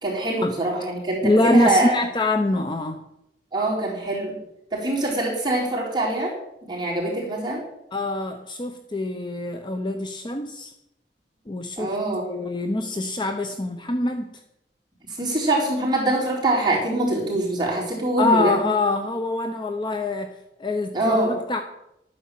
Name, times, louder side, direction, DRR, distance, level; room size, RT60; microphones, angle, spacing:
voice 1, 0.0-2.0 3.5-4.4 4.7-6.3 6.7-7.6 11.8-12.2 15.2-18.7 20.9-21.3, right 2 dB, 25° right, -4 dB, 4.0 m, -24 dB
voice 2, 1.2-3.0 7.9-10.7 11.5-12.0 12.2-14.4 18.2-20.3 20.6-21.6, left 2 dB, 25° left, 6 dB, 0.9 m, -24 dB
13.0 x 9.5 x 7.5 m, 0.83 s
head